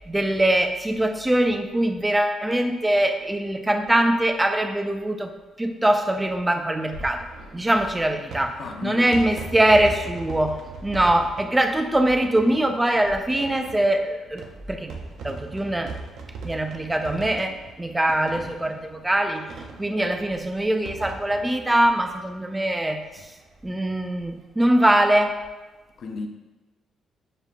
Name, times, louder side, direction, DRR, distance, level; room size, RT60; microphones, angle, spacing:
voice 1, 0.1-5.3 5.6-7.3 7.5-14.9 15.2-16.0 16.4-19.5 19.8-23.2 23.6-25.4, right 1 dB, 15° right, 6 dB, 0.3 m, -22 dB
sound 1, 6.8-22.8 23.1-23.2 23.4-23.5 24.8-25.1, right 4 dB, 75° right, 0.5 m, -40 dB
voice 2, 8.6-9.3 23.2-23.3 26.0-26.3, left 4 dB, 65° left, 4 dB, 0.5 m, -34 dB
6.8 x 2.4 x 2.3 m, 1.1 s
cardioid pair, 90°, 0 cm